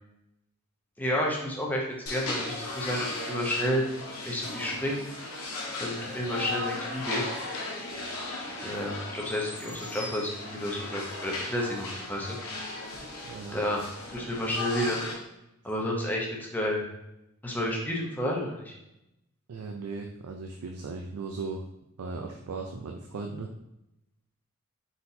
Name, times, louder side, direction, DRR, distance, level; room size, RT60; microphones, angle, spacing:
voice 1, 1.0-3.8 4.2-5.0 5.8-7.2 8.6-12.4 13.5-13.8 14.1-15.0 15.6-16.8 17.4-18.7, left 1 dB, 10° left, -2 dB, 0.7 m, -30 dB
sound 1, 2.1-15.1, left 2 dB, 85° left, 0.9 m, -36 dB
voice 2, 13.2-13.6 19.5-21.6 22.0-23.5, right 4 dB, 90° right, 2 dB, 0.4 m, -37 dB
4.1 x 4.0 x 2.7 m, 0.87 s
head